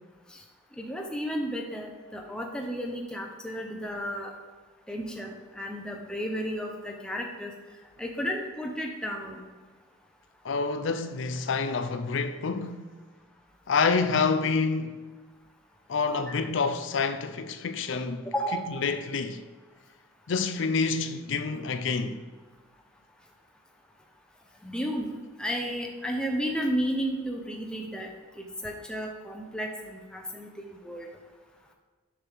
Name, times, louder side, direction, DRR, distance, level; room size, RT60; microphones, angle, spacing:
voice 1, 0.8-4.3 4.9-7.5 8.0-9.4 18.3-18.7 24.6-25.1 25.4-31.1, equal, 5° left, 0.6 m, -33 dB
voice 2, 10.4-12.8 13.7-15.1 15.9-18.2 18.8-19.4 20.3-22.2, left 4 dB, 65° left, 0.5 m, -27 dB
7.0 x 6.0 x 3.5 m
head